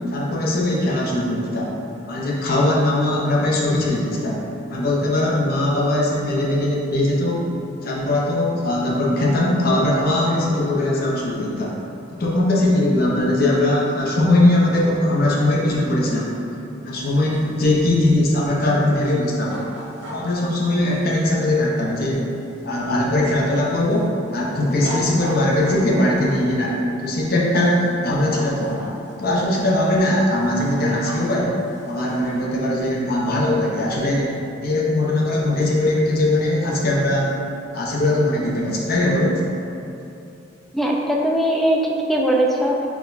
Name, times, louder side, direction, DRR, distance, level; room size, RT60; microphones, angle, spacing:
voice 1, 0.1-1.7 2.1-4.4 4.7-7.4 7.8-11.7 12.2-16.4 16.8-19.6 20.1-22.3 22.6-28.9 29.2-31.6 31.9-34.4 34.6-37.4 37.7-39.4, left 1 dB, 50° left, -4 dB, 0.7 m, -20 dB
sound 1, 17.0-23.0 23.5-26.3 27.4-27.9 28.2-29.3 29.6-32.4, left 1 dB, 70° right, 1.0 m, -37 dB
voice 2, 40.7-42.8, right 1 dB, ahead, -2 dB, 0.3 m, -20 dB
4.6 x 2.2 x 3.9 m, 2.8 s
head